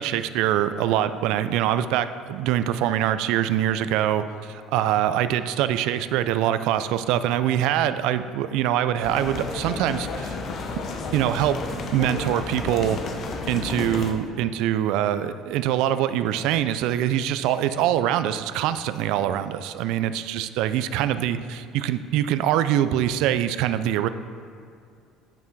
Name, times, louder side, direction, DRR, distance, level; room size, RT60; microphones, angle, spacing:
voice 1, 0.0-10.4 11.1-11.6 11.9-13.0 13.5-24.1, right 11 dB, 75° right, 12 dB, 0.4 m, -24 dB
sound 1, 9.0-14.1, left 3 dB, 45° left, 0.8 m, -32 dB
8.9 x 5.6 x 4.6 m, 2.3 s
cardioid pair, 130°, 0 cm